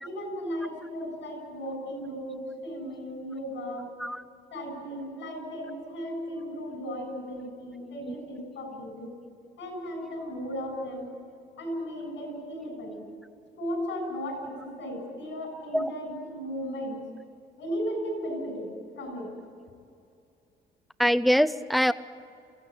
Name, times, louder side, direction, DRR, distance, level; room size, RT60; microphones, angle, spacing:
voice 1, 0.0-3.9 4.5-9.1 9.6-11.1 11.6-13.1 13.6-17.1 17.6-19.3, equal, 75° left, 4 dB, 7.4 m, -35 dB
voice 2, 21.0-21.9, equal, ahead, 13 dB, 0.8 m, -23 dB
24.0 x 15.5 x 9.0 m, 2.4 s
cardioid pair, 90°, 20 cm